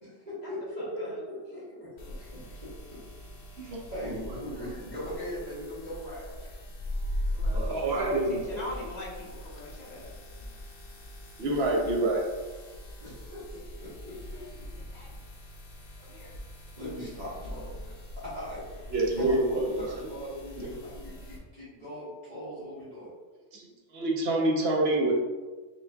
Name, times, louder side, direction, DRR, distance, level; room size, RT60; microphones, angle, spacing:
voice 1, 0.0-2.7 3.5-6.5 13.0-14.7 16.8-23.1, equal, 35° right, -12 dB, 1.5 m, -40 dB
voice 2, 0.8-1.2 7.3-10.1 14.3-14.5 14.7-15.3 16.0-16.4 21.1-21.2 23.6-23.7, left 1 dB, 35° left, -6 dB, 1.1 m, -44 dB
sound 1, 2.0-21.4, left 1 dB, 55° left, 0.8 m, -40 dB
voice 3, 7.5-8.6 11.4-12.2 18.9-19.7 20.6-20.7 23.5-23.7 23.9-25.1, right 2 dB, 60° right, -1 dB, 0.9 m, -27 dB
4.9 x 3.1 x 2.3 m, 1.3 s
omnidirectional pair, 1.3 m